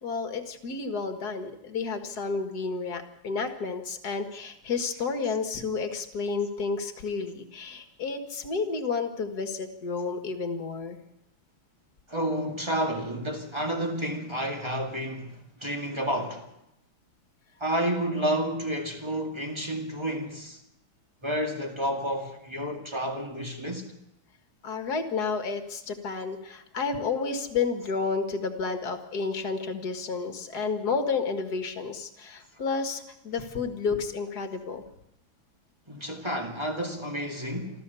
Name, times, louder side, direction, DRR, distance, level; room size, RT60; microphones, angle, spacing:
voice 1, 0.0-11.0 24.6-34.8, left 4 dB, 50° left, 2.1 m, -31 dB
voice 2, 12.1-16.5 17.6-20.6 21.2-23.9 35.9-37.8, equal, 15° right, 2.2 m, -30 dB
27.0 x 13.5 x 7.0 m
omnidirectional pair, 2.4 m